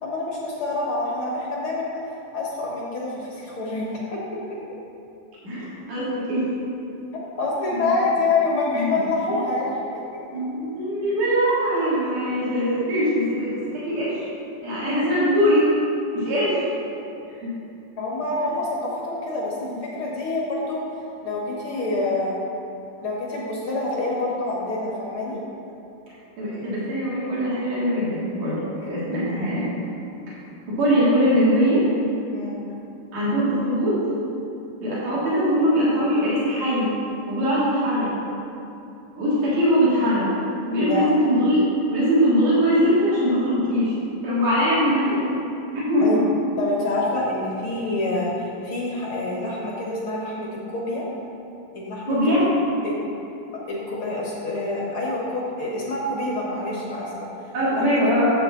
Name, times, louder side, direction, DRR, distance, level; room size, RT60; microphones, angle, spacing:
voice 1, 0.0-1.9 2.3-4.6 7.4-9.8 10.1-10.4 18.0-20.8 21.2-22.4 23.0-25.4 28.8-29.0 32.3-32.6 40.8-41.1 46.0-46.2 46.6-51.1 51.7-52.5 52.8-52.9 53.5-57.3 57.7-57.8, left 2 dB, 50° left, -4 dB, 1.7 m, -27 dB
voice 2, 5.4-6.5 7.7-7.9 8.7-8.9 9.3-9.4 10.3-14.3 14.6-15.7 16.1-16.6 17.4-17.5 19.6-20.1 26.4-29.7 30.7-31.8 33.1-33.9 34.8-36.9 37.3-38.1 39.2-40.3 40.7-43.9 44.2-45.2 45.7-46.1 52.1-52.4 57.5-58.3, equal, 50° right, -9 dB, 4.0 m, -22 dB
13.0 x 7.9 x 4.0 m, 2.8 s
omnidirectional pair, 4.0 m